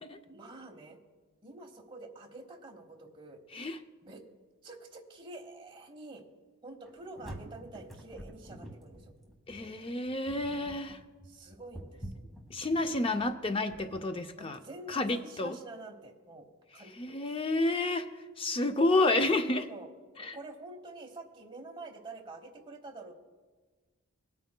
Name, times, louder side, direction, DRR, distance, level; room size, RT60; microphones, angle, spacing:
voice 1, 0.3-1.0 1.4-3.4 4.0-4.2 4.6-6.2 6.6-9.1 11.2-12.2 14.4-16.5 16.7-17.3 19.7-19.9 20.2-23.2, right 2 dB, 25° right, 3 dB, 0.9 m, -47 dB
sound 1, 6.8-14.0, right 1 dB, ahead, 1.3 m, -47 dB
voice 2, 9.5-11.0 12.5-14.6 14.9-15.6 17.0-18.1 18.4-19.7 20.2-20.4, left 2 dB, 25° left, 7 dB, 0.4 m, -30 dB
20.0 x 9.1 x 2.2 m, 1.4 s
head